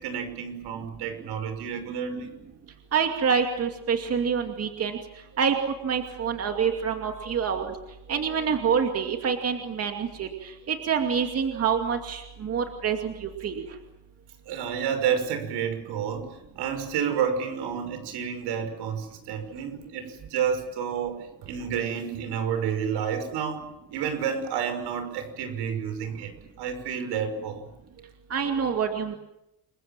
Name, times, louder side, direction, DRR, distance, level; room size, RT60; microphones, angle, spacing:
voice 1, 0.0-2.3 14.5-23.7 23.9-27.6, right 7 dB, 80° right, 8 dB, 6.1 m, -30 dB
voice 2, 2.9-5.0 5.4-5.6 5.8-7.7 8.1-13.6 28.3-29.2, right 7 dB, 35° right, 4 dB, 2.5 m, -26 dB
29.5 x 22.5 x 7.5 m, 0.86 s
cardioid pair, 155°, 40 cm